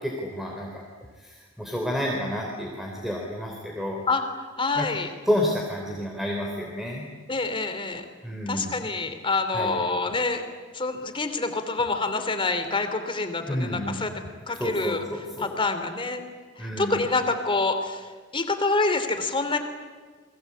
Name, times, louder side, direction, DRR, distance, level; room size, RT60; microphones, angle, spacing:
voice 1, 0.0-0.8 1.2-4.0 4.8-4.9 5.3-7.1 8.2-8.7 9.5-9.8 13.5-14.2 14.5-15.6 16.6-17.0, equal, ahead, 0 dB, 3.5 m, -30 dB
voice 2, 4.6-5.1 7.3-8.0 8.5-10.4 10.7-14.1 14.5-15.0 15.4-16.2 16.6-18.1 18.3-19.6, left 3 dB, 25° left, 8 dB, 2.9 m, -26 dB
30.0 x 22.0 x 8.6 m, 1.5 s
head